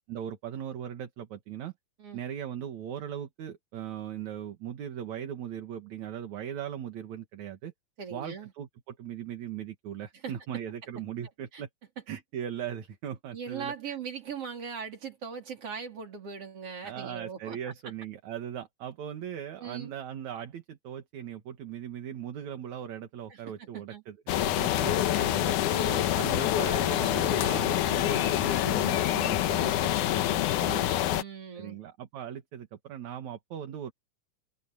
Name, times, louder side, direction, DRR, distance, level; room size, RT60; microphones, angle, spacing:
voice 1, 0.1-1.7 2.1-7.7 8.1-11.7 12.1-14.0 16.8-30.0 30.6-30.8 31.5-33.9, right 9 dB, 60° right, 2.9 m, -39 dB
voice 2, 8.0-8.5 10.1-10.3 11.5-11.6 13.3-17.7 19.6-19.9 23.3-24.0 24.8-24.9 25.7-26.1 30.2-31.8, right 6 dB, 40° right, 4.6 m, -40 dB
sound 1, 24.3-31.2, left 12 dB, 70° left, 2.3 m, -26 dB
omnidirectional pair, 4.0 m